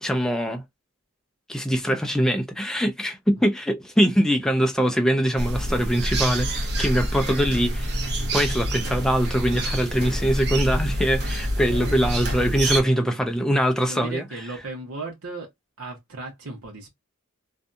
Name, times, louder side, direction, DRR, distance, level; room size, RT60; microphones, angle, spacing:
voice 1, 0.0-0.6 1.5-7.9 8.3-14.2, equal, 5° left, 0.3 m, -23 dB
sound 1, 5.4-12.8, right 1 dB, 50° right, 0.8 m, -27 dB
voice 2, 12.8-13.2 13.9-15.5 15.8-16.9, right 3 dB, 90° right, 0.9 m, -36 dB
2.6 x 2.2 x 2.5 m
head